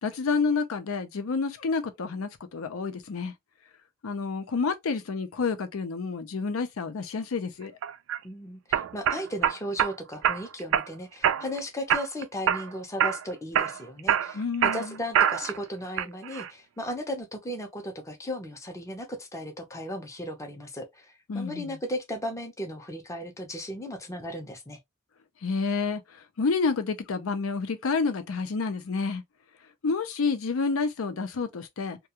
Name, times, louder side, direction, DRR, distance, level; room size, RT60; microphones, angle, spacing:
voice 1, 0.0-3.3 4.0-7.7 14.3-15.0 21.3-21.8 25.4-29.2 29.8-32.0, left 4 dB, 80° left, 0.5 m, -29 dB
sound 1, 7.8-8.2 8.7-9.9 10.2-10.9 11.2-11.6 11.9-12.7 13.0-13.2 13.5-15.6 16.0-16.5, right 9 dB, 65° right, 0.3 m, -25 dB
voice 2, 8.2-24.8, equal, 15° left, 0.5 m, -36 dB
2.3 x 2.2 x 2.8 m
head